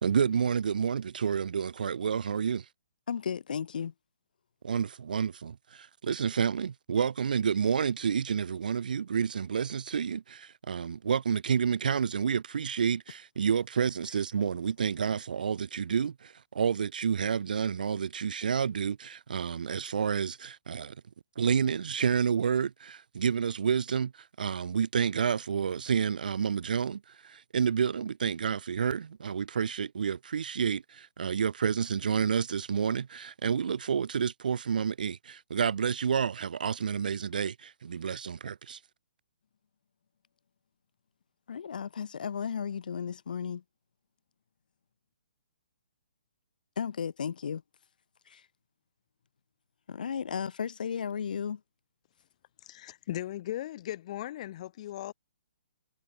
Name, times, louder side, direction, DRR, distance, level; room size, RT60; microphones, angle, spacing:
voice 1, 0.0-2.6 4.6-20.9 21.3-24.1 24.4-38.8, right 7 dB, 65° right, 1.7 m, -29 dB
voice 2, 3.1-3.9 41.5-43.6 46.8-47.6 48.2-48.5 49.9-51.6, left 7 dB, 60° left, 6.7 m, -34 dB
voice 3, 52.6-55.1, left 13 dB, 45° left, 3.5 m, -37 dB
figure-of-eight pair, 130°, 5 cm